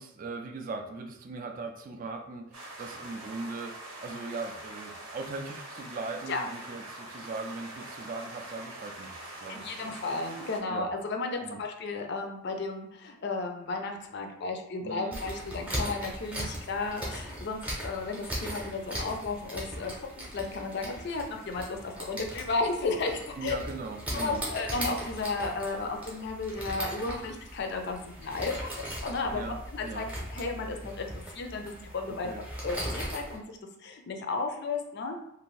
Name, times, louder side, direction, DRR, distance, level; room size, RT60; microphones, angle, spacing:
voice 1, 0.0-10.0 10.7-10.9 11.4-11.6 14.8-15.2 23.4-24.4 29.3-30.1 32.1-32.4, right 3 dB, 40° right, 3 dB, 0.3 m, -39 dB
sound 1, 2.5-10.6, right 1 dB, 80° right, 0.8 m, -44 dB
voice 2, 9.5-23.6 24.1-28.7 29.0-29.4 29.7-30.0 30.3-35.2, left 3 dB, 55° left, 4 dB, 0.4 m, -34 dB
sound 2, 15.1-33.4, equal, 5° right, 0.7 m, -39 dB
2.6 x 2.5 x 3.1 m, 0.78 s
head